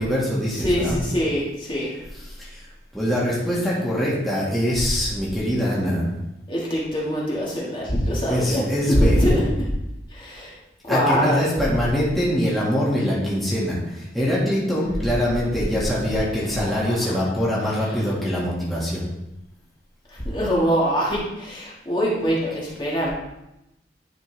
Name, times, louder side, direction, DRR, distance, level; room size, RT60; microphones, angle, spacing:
voice 1, 0.0-1.0 2.1-2.7 2.9-6.1 8.3-9.2 10.9-19.0, equal, ahead, -7 dB, 1.6 m, -23 dB
voice 2, 0.5-1.9 6.5-8.6 8.9-9.7 10.1-10.5 10.8-11.5 16.8-17.1 20.2-23.1, equal, 25° left, -5 dB, 1.6 m, -23 dB
10.5 x 4.4 x 3.2 m, 0.90 s
head